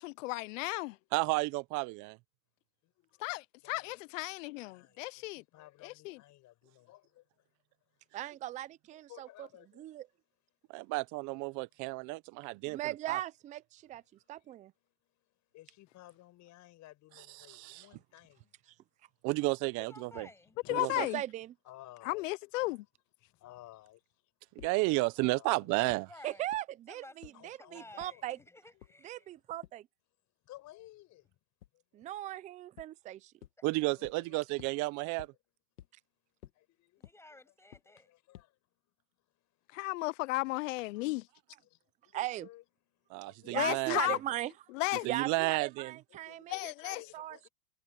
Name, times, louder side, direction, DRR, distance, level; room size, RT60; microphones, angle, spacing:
voice 1, 0.0-1.0 3.2-5.4 5.8-6.2 20.7-21.2 22.0-22.9 39.7-41.2 43.5-44.2 44.7-45.1 46.5-47.0, left 22 dB, 55° left, 0.7 m, -34 dB
voice 2, 1.1-2.2 10.7-12.8 13.1-13.2 17.5-17.8 19.2-20.3 20.7-21.1 24.6-26.1 33.6-35.3 43.1-44.2 45.0-46.0, right 24 dB, 40° right, 0.9 m, -32 dB
voice 3, 2.8-3.2 3.6-4.0 4.7-7.3 8.9-9.8 11.3-11.6 14.2-14.5 15.5-18.5 20.1-20.3 20.6-20.8 21.6-22.3 23.3-24.0 25.2-25.7 27.3-28.3 30.4-31.4 31.7-32.0 33.9-34.6 36.5-37.0 38.0-38.6 39.7-39.8 40.8-41.1 41.7-41.8 42.0-42.6 42.9-43.9 46.1-47.5, left 16 dB, 40° left, 6.5 m, -56 dB
voice 4, 8.1-9.5 9.8-10.1 12.7-14.0 14.3-14.7 20.7-21.5 26.2-28.4 29.0-29.9 31.9-33.3 42.1-42.5 43.4-44.5 45.0-47.5, right 14 dB, 15° right, 0.5 m, -39 dB
voice 5, 19.8-20.6 26.0-26.6 26.9-29.3 37.0-38.1, left 2 dB, 5° left, 7.9 m, -54 dB
sound 1, 24.6-24.7 25.2-25.3 25.9-26.0 26.5-26.6 27.2-27.3 28.0-28.1 28.8-28.9 29.6-29.7 31.6-31.7 32.8-32.9 33.4-33.5 34.0-34.1 34.6-34.7 35.2-35.3 35.8-35.9 36.4-36.5 37.0-37.1 37.7-37.8 38.3-38.4, left 12 dB, 85° left, 2.1 m, -50 dB
hypercardioid pair, 125°, 45 cm